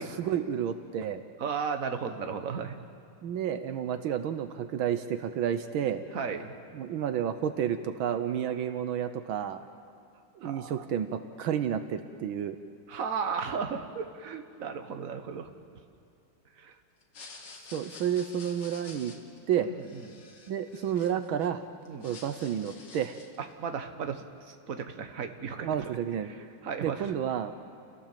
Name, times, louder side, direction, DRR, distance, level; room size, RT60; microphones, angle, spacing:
voice 1, 0.0-1.2 3.2-6.0 6.7-9.6 10.4-12.6 17.7-19.1 19.5-19.7 20.5-21.6 22.0-23.2 25.6-26.3 26.8-27.5, right 9 dB, 70° right, 9 dB, 1.6 m, -30 dB
voice 2, 1.4-2.8 6.1-6.5 10.4-10.8 12.9-15.5 16.6-16.7 19.6-20.3 21.8-22.1 23.4-25.9 26.2-27.1, right 6 dB, 45° right, 6 dB, 1.5 m, -35 dB
sound 1, 17.0-21.5 21.8-23.4, left 4 dB, 55° left, 2.4 m, -49 dB
29.5 x 17.0 x 7.5 m, 2.5 s
omnidirectional pair, 2.4 m